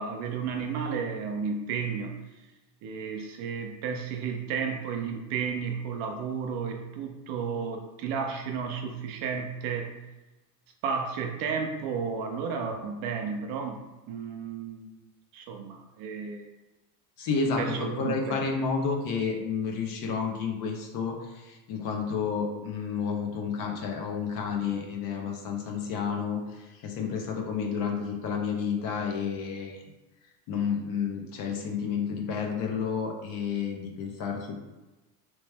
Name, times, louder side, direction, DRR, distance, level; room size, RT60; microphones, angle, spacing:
voice 1, 0.0-2.2 2.8-9.9 10.8-13.8 14.1-14.9 15.3-16.5 17.6-18.4, right 6 dB, 45° right, 3 dB, 0.5 m, -32 dB
voice 2, 17.2-29.8 30.5-34.6, left 5 dB, 40° left, 2 dB, 0.7 m, -31 dB
3.2 x 3.0 x 3.3 m, 1.1 s
supercardioid pair, 140°, 49 cm